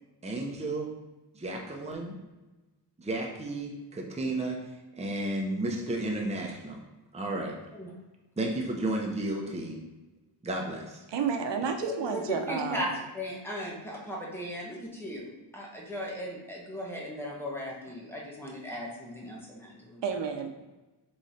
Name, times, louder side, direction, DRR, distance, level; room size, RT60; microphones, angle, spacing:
voice 1, 0.2-0.9 1.3-2.2 3.0-6.8 7.1-7.6 8.4-9.8 10.4-11.0, right 2 dB, 15° right, 0 dB, 0.6 m, -33 dB
voice 2, 11.1-12.8 20.0-20.5, right 6 dB, 75° right, 5 dB, 0.6 m, -31 dB
voice 3, 11.8-20.0, equal, 5° left, -3 dB, 1.1 m, -37 dB
3.7 x 3.1 x 4.1 m, 1.1 s
wide cardioid pair, 90°, 43 cm